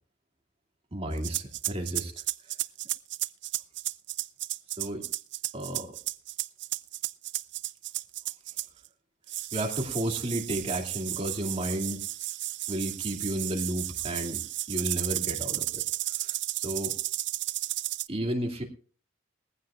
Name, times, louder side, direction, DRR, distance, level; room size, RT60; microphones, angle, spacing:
voice 1, 0.9-2.1 2.4-2.5 4.8-5.0 5.5-6.0 9.5-12.1 12.7-14.4 14.7-16.9 18.1-18.6, right 1 dB, 35° right, 2 dB, 2.4 m, -33 dB
sound 1, 1.2-8.9 9.3-18.1, right 16 dB, 65° right, 0.5 m, -33 dB
20.0 x 15.5 x 2.4 m, 0.41 s
head